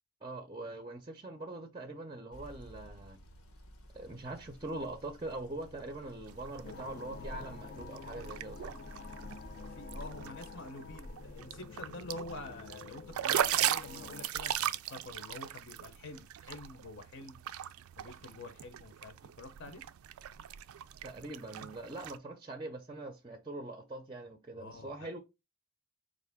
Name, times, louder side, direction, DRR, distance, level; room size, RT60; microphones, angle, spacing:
voice 1, 0.2-3.2 3.9-8.8 21.0-25.2, right 2 dB, 20° right, 0.5 m, -43 dB
sound 1, 2.3-11.6, equal, 85° left, 0.9 m, -52 dB
sound 2, 6.3-22.2, right 11 dB, 85° right, 0.3 m, -39 dB
sound 3, 6.6-14.3, left 5 dB, 45° left, 0.3 m, -49 dB
voice 2, 9.7-17.4 18.0-19.8 24.5-25.1, left 2 dB, 60° left, 0.7 m, -47 dB
4.6 x 2.5 x 3.4 m
head